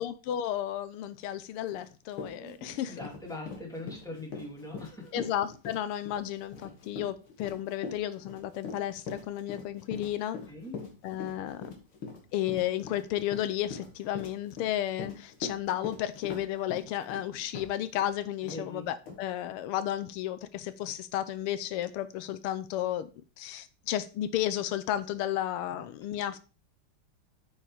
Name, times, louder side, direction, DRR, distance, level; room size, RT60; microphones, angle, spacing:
voice 1, 0.0-3.1 5.1-10.4 11.0-11.7 12.3-23.1 23.4-26.4, left 12 dB, 90° left, 1.6 m, -33 dB
Run, 1.7-1.8 2.1-18.1 18.5-18.6 19.1-19.2, left 4 dB, 70° left, 2.5 m, -42 dB
voice 2, 2.3-5.2 10.5-10.8 18.4-18.9 25.7-25.8, left 1 dB, ahead, 2.5 m, -42 dB
8.7 x 4.9 x 4.8 m
omnidirectional pair, 2.4 m